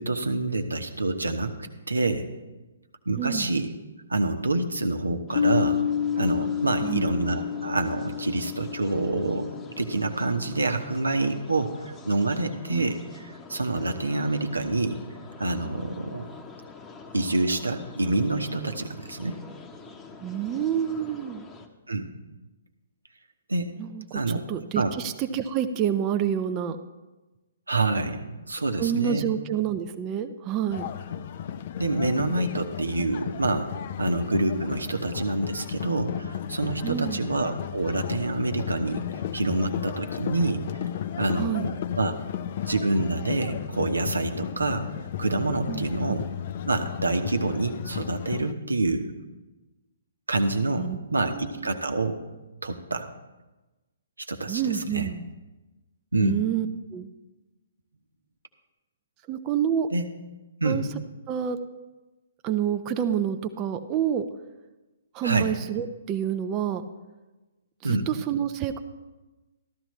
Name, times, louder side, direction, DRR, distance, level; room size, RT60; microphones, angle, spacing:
voice 1, 0.0-2.3 3.1-3.7 4.1-5.8 6.2-13.2 13.5-15.0 15.4-16.3 17.1-19.4 21.9-22.1 23.5-23.7 24.1-24.4 24.8-24.9 27.7-29.3 31.8-33.7 34.0-39.0 39.3-40.6 41.2-42.1 42.7-44.9 45.2-46.2 46.7-49.1 50.3-52.2 52.6-53.1 54.3-55.1 56.1-56.4 59.9-60.0 60.6-60.8 65.2-65.5 67.8-68.1, right 2 dB, 80° right, 6 dB, 1.1 m, -27 dB
voice 2, 3.2-3.5 6.8-7.1 12.7-12.9 20.2-21.4 23.8-26.8 28.8-30.9 36.8-37.2 41.4-41.7 45.7-46.2 50.8-51.7 54.5-55.3 56.2-57.1 59.3-59.9 60.6-60.9 61.3-61.6 62.4-64.3 65.1-66.9 67.8-68.8, right 9 dB, 25° right, 7 dB, 0.6 m, -28 dB
sound 1, 5.3-21.7, left 4 dB, 15° left, 1.0 m, -46 dB
Piano, 5.4-10.7, left 8 dB, 70° left, 1.5 m, -30 dB
sound 2, 30.7-48.5, left 9 dB, 45° left, 0.5 m, -34 dB
14.0 x 12.5 x 3.2 m, 1.1 s
figure-of-eight pair, 125°, 0 cm